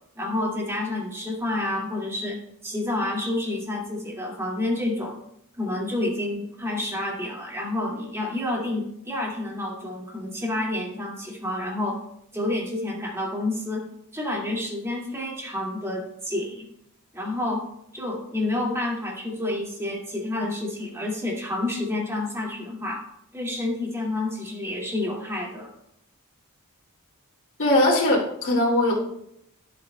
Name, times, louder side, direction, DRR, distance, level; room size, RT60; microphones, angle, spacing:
voice 1, 0.2-2.4 2.6-5.2 5.6-12.0 12.3-13.9 14.1-16.7 17.1-17.6 17.9-23.0 23.3-25.7, left 2 dB, 10° right, -2 dB, 2.2 m, -29 dB
voice 2, 27.6-28.9, left 1 dB, 60° left, -5 dB, 2.5 m, -20 dB
14.5 x 7.4 x 2.3 m, 0.76 s
head